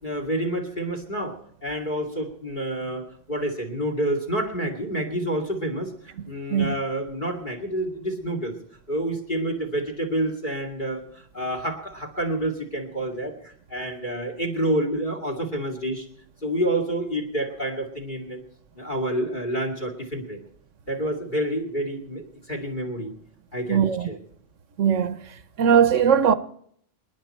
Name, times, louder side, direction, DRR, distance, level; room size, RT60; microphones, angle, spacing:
voice 1, 0.0-8.5 8.9-16.0 16.4-18.4 18.7-20.4 20.9-22.2 22.5-23.1 23.5-24.2, right 1 dB, 40° left, 2.8 m, -28 dB
voice 2, 6.2-6.7 23.7-24.1 24.8-25.3 25.6-26.3, right 8 dB, 80° right, 1.2 m, -20 dB
27.5 x 10.5 x 4.4 m
omnidirectional pair, 1.3 m